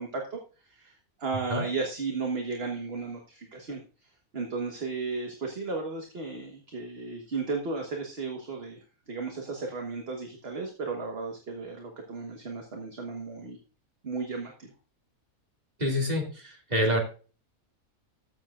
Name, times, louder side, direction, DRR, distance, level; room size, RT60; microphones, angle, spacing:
voice 1, 0.0-13.6 14.0-14.7, right 4 dB, 45° right, 2 dB, 1.4 m, -35 dB
voice 2, 15.8-17.0, equal, 30° right, 1 dB, 2.4 m, -27 dB
13.5 x 7.3 x 2.4 m, 0.36 s
omnidirectional pair, 1.5 m